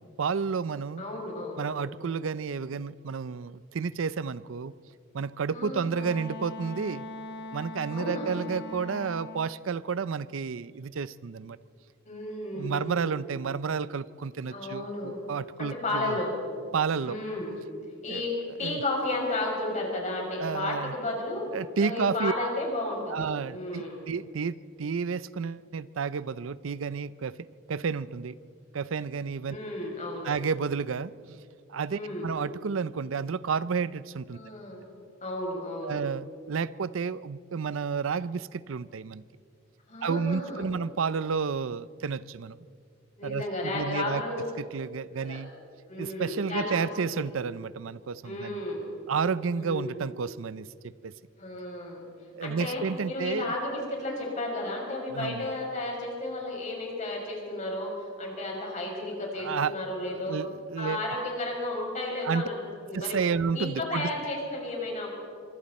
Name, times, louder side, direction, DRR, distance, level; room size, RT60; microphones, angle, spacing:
voice 1, 0.0-1.0 1.6-4.7 5.1-7.1 7.5-11.6 12.5-16.1 16.7-17.2 18.1-18.3 18.6-18.8 20.4-20.9 21.5-22.3 23.1-27.4 27.7-28.4 28.7-29.6 30.2-31.4 31.7-34.4 35.8-39.2 40.0-42.6 43.2-44.2 44.6-45.5 46.0-48.6 49.1-50.7 51.0-51.1 52.3-53.5 55.1-55.5 59.4-59.7 60.0-61.0 62.2-62.4 62.9-64.1, right 5 dB, 80° right, 17 dB, 0.5 m, -31 dB
voice 2, 1.0-1.6 5.5-6.1 7.9-8.4 12.0-13.2 14.5-15.2 15.6-16.3 17.0-17.5 18.0-21.5 21.8-23.2 23.5-24.0 29.5-30.3 31.9-32.3 34.3-34.8 35.2-36.0 39.9-40.7 43.2-44.4 45.2-45.4 45.9-47.2 48.2-49.0 49.5-50.1 51.4-52.0 52.4-60.4 60.8-63.2 63.5-65.1, left 2 dB, 40° left, -1 dB, 6.1 m, -33 dB
Wind instrument woodwind instrument, 5.9-9.6, left 2 dB, 60° left, 1.4 m, -41 dB
25.5 x 24.5 x 4.3 m, 2.2 s
head